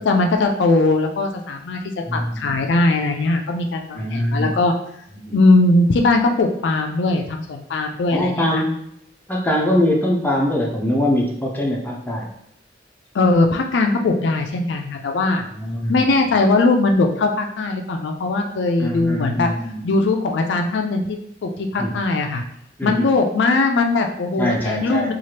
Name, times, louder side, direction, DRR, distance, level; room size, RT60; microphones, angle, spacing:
voice 1, 0.0-1.8 2.1-4.7 5.3-8.6 13.1-15.4 15.9-19.5 19.8-22.4 22.8-25.1, left 2 dB, 70° left, 4 dB, 0.4 m, -19 dB
voice 2, 2.1-2.8 3.9-4.5 5.2-5.4 8.1-8.7 9.3-12.3 15.5-16.0 18.8-20.0 21.8-22.0 22.8-23.1 24.4-25.1, left 1 dB, 10° left, -2 dB, 0.5 m, -23 dB
3.1 x 2.4 x 2.8 m, 0.74 s
head